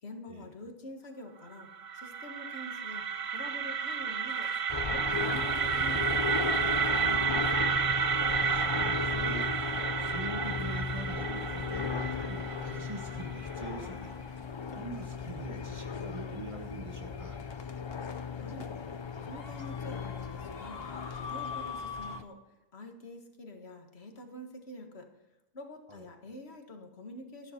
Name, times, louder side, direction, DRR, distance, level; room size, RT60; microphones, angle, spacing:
voice 1, 0.0-1.7 1.9-3.0 3.3-4.5 4.9-7.8 18.3-18.7 19.2-20.9 21.1-22.4 22.7-25.1 25.5-27.5, left 1 dB, 90° left, 4 dB, 1.9 m, -46 dB
sound 1, 1.6-13.5, right 6 dB, 50° right, 0.4 m, -31 dB
sound 2, 2.9-3.4 4.0-22.2, left 5 dB, 70° left, 1.3 m, -49 dB
sound 3, 4.7-22.2, left 5 dB, 35° left, 0.5 m, -36 dB
voice 2, 8.5-14.5 14.7-17.4 25.9-26.0, right 2 dB, 30° right, 2 dB, 1.8 m, -43 dB
13.0 x 11.5 x 4.4 m, 1.1 s
omnidirectional pair, 1.1 m